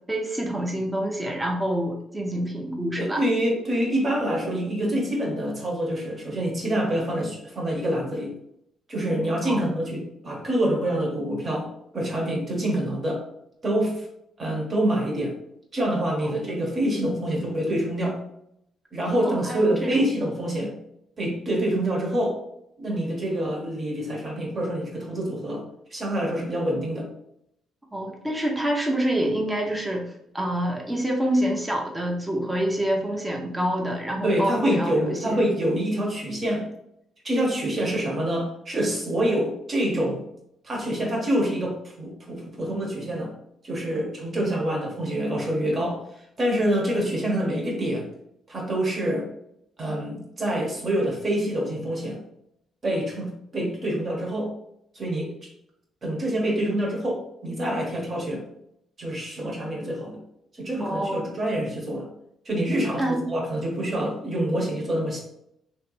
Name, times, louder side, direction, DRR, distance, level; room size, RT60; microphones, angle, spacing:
voice 1, 0.1-3.2 9.5-9.7 16.2-16.6 19.3-20.0 27.9-35.4 60.8-61.3 63.0-63.3, right 1 dB, 10° right, -1 dB, 0.8 m, -27 dB
voice 2, 3.0-8.3 8.9-13.2 13.6-14.0 14.4-15.3 15.7-18.2 18.9-20.7 21.2-22.4 22.8-25.6 25.9-27.1 34.2-36.7 37.2-40.2 40.6-43.3 43.6-48.1 48.5-49.3 49.8-52.2 52.8-54.5 54.9-55.3 56.0-58.4 59.0-60.2 60.6-62.1 62.4-65.2, right 1 dB, 40° right, -1 dB, 1.4 m, -26 dB
3.1 x 3.0 x 3.2 m, 0.75 s
supercardioid pair, 70°, 0 cm